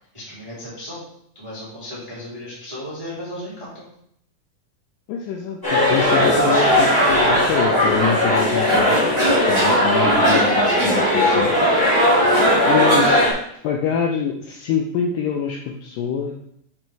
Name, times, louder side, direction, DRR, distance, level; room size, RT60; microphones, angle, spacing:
voice 1, 0.1-1.0 1.3-3.8, left 1 dB, 10° right, -9 dB, 2.1 m, -35 dB
voice 2, 5.1-9.1 9.4-11.5 12.6-13.3 13.6-16.4, left 7 dB, 85° left, 1 dB, 1.9 m, -25 dB
sound 1, 5.6-13.3, equal, 25° left, 0.4 m, -17 dB
Cough, 8.7-9.8 10.2-10.5 10.8-11.0 12.3-13.2, right 1 dB, 70° right, 0.4 m, -25 dB
7.3 x 4.4 x 4.6 m, 0.71 s
omnidirectional pair, 4.7 m